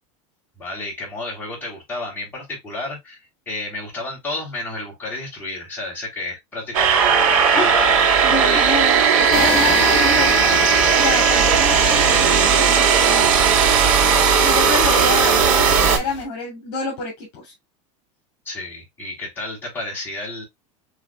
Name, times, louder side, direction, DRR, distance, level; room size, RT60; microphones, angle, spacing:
voice 1, 0.6-8.9 14.2-14.6 18.4-20.4, left 2 dB, 10° left, 3.3 m, -31 dB
sound 1, 6.7-16.0, right 6 dB, 80° right, 2.5 m, -16 dB
voice 2, 8.2-10.5 10.9-13.4 14.4-17.5, left 2 dB, 50° left, 2.6 m, -27 dB
sound 2, 9.3-16.2, left 6 dB, 30° left, 1.6 m, -32 dB
6.2 x 3.4 x 2.2 m
supercardioid pair, 165°, 17 cm